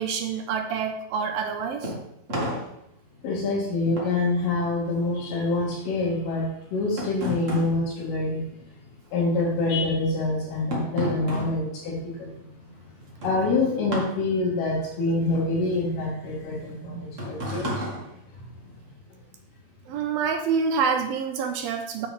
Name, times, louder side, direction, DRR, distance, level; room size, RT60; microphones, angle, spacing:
voice 1, 0.0-1.9 16.7-17.1 19.9-22.1, right 6 dB, 80° right, 5 dB, 2.3 m, -27 dB
sound 1, 1.3-9.0 9.2-18.9, equal, 55° right, 0.8 m, -35 dB
voice 2, 3.2-8.4 9.1-12.4 13.2-17.9, left 2 dB, 75° left, -4 dB, 3.6 m, -26 dB
9.0 x 6.8 x 3.4 m, 0.77 s
omnidirectional pair, 4.5 m